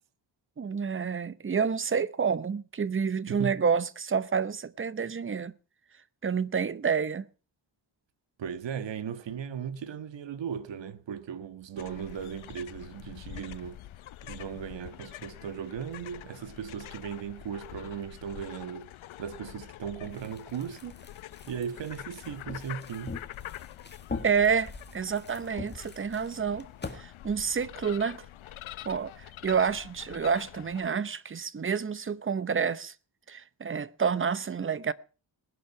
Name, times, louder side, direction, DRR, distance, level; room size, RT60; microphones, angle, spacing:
voice 1, 0.6-5.5 6.2-7.3 24.2-26.7 26.9-28.2 28.8-32.9 33.3-34.9, right 6 dB, 25° right, 0.8 m, -29 dB
voice 2, 3.3-3.6 8.4-13.8 14.2-18.9 19.2-21.0 21.5-23.2, right 8 dB, 65° right, 1.6 m, -37 dB
Penguin Colony at Danco Island at Antarctica Peninsula, 11.8-30.9, left 13 dB, 85° left, 0.8 m, -46 dB
sound 1, 20.0-27.0, left 4 dB, 20° left, 1.9 m, -43 dB
19.5 x 11.5 x 5.8 m
wide cardioid pair, 170°, 47 cm